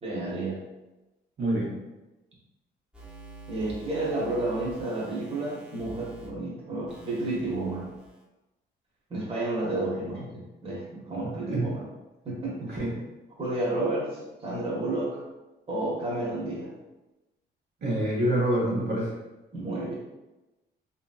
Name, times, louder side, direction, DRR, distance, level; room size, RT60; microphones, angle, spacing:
voice 1, 0.0-0.6 3.5-7.9 9.1-11.8 12.2-12.9 13.4-15.2 15.7-16.7 19.5-19.9, right 2 dB, 30° right, -5 dB, 1.1 m, -31 dB
voice 2, 1.4-1.7 11.5-11.7 12.6-12.9 17.8-19.1, right 1 dB, 55° right, -5 dB, 1.0 m, -26 dB
sound 1, 2.9-6.3 6.9-8.2, right 3 dB, 5° right, 0.7 m, -47 dB
2.9 x 2.7 x 2.3 m, 1.0 s
cardioid pair, 90°, 20 cm